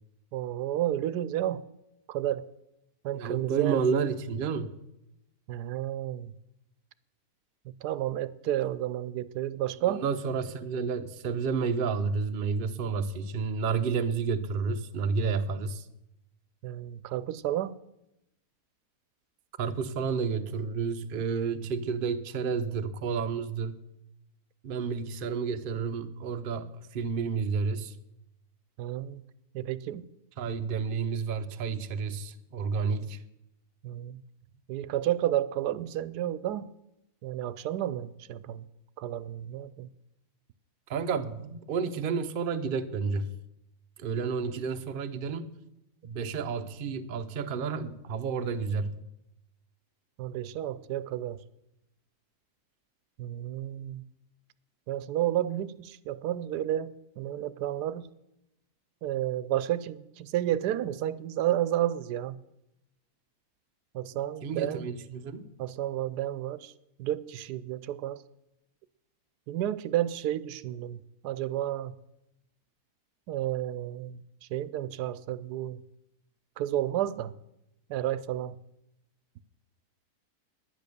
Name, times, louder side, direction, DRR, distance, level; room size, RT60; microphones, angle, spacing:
voice 1, 0.3-1.6 2.1-2.5 3.0-3.8 5.5-6.3 7.8-10.0 16.6-17.7 28.8-29.2 29.5-30.1 33.8-34.2 34.7-36.7 37.2-38.7 39.0-39.9 50.2-51.4 53.2-54.0 54.9-58.1 59.0-62.4 63.9-64.9 65.6-66.7 67.0-68.2 69.5-71.9 73.3-74.2 74.5-75.8 76.6-77.3 77.9-78.5, right 12 dB, 90° right, 1.2 m, -31 dB
voice 2, 3.2-4.7 9.9-15.9 19.6-23.8 24.6-27.9 30.4-33.2 40.9-43.3 44.0-45.5 46.0-48.9 64.4-65.5, right 5 dB, 50° right, 0.7 m, -30 dB
10.5 x 9.8 x 6.7 m
omnidirectional pair, 1.7 m